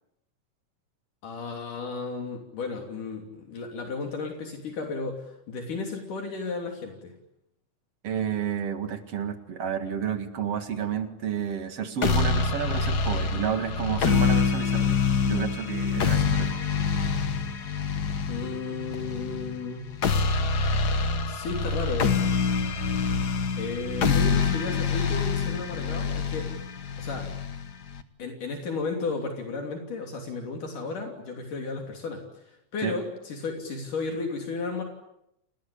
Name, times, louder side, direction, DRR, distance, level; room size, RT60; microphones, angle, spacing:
voice 1, 1.2-7.1 18.3-19.9 21.3-22.1 23.6-26.7 27.0-27.3 28.2-34.8, left 4 dB, 70° left, 2 dB, 4.7 m, -34 dB
voice 2, 8.0-15.0 15.3-16.5 24.0-24.4 32.8-32.9, right 8 dB, 50° right, 8 dB, 2.7 m, -31 dB
sound 1, 12.0-28.0, left 5 dB, 50° left, 1.3 m, -26 dB
29.5 x 20.5 x 8.6 m, 0.82 s
omnidirectional pair, 3.8 m